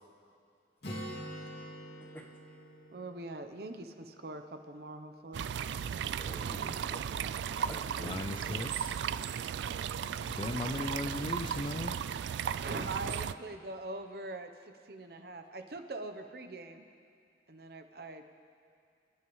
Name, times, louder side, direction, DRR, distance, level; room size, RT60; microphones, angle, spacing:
Acoustic guitar, 0.8-4.5, equal, 65° left, 2.2 m, -45 dB
voice 1, 2.9-5.5 12.6-14.5 14.8-16.8 17.5-18.2, right 2 dB, 55° right, 7 dB, 0.8 m, -42 dB
sound 1, 5.3-13.3, right 8 dB, 75° right, 0.3 m, -36 dB
voice 2, 6.2-8.7, equal, 10° left, 1 dB, 1.0 m, -49 dB
voice 3, 8.0-8.9 10.3-11.9, left 2 dB, 30° left, 6 dB, 0.4 m, -37 dB
26.0 x 10.5 x 3.1 m, 2.4 s
head